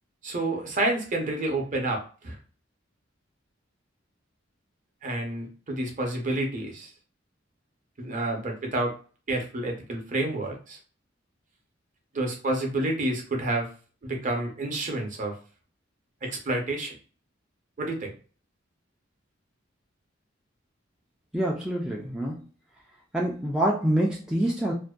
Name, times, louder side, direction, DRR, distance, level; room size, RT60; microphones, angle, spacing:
voice 1, 0.2-2.4 5.0-6.9 8.0-8.9 9.3-10.8 12.1-13.7 14.0-15.4 16.2-16.9 17.8-18.1, right 2 dB, 40° right, 2 dB, 0.6 m, -29 dB
voice 2, 21.3-22.4 23.1-24.7, right 1 dB, 5° right, -3 dB, 0.3 m, -26 dB
2.5 x 2.1 x 2.2 m, 0.39 s
head